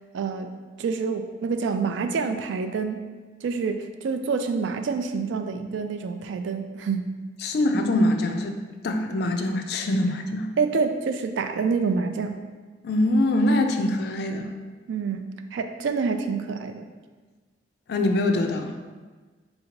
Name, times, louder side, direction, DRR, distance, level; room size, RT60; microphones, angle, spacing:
voice 1, 0.1-0.5 0.8-3.0 3.4-7.1 10.6-12.4 14.9-16.9, right 5 dB, 80° right, 8 dB, 0.3 m, -27 dB
voice 2, 7.4-8.6 8.8-10.5 12.8-14.5 17.9-18.7, left 1 dB, 60° left, 5 dB, 0.3 m, -23 dB
4.2 x 2.7 x 2.9 m, 1.3 s
head